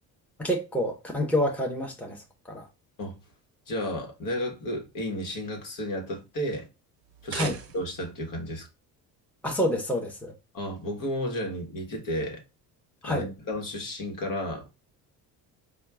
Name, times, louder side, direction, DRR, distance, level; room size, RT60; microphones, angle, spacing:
voice 1, 0.4-2.2 2.5-2.7 7.3-7.6 9.4-10.3 13.0-13.3, equal, 5° left, 1.1 m, -28 dB
voice 2, 3.7-6.7 7.2-8.7 10.5-12.4 13.0-14.7, equal, 50° left, 1.5 m, -32 dB
sound 1, 7.0-8.2, right 6 dB, 35° right, 0.7 m, -38 dB
4.3 x 2.5 x 3.5 m
supercardioid pair, 80°, 40 cm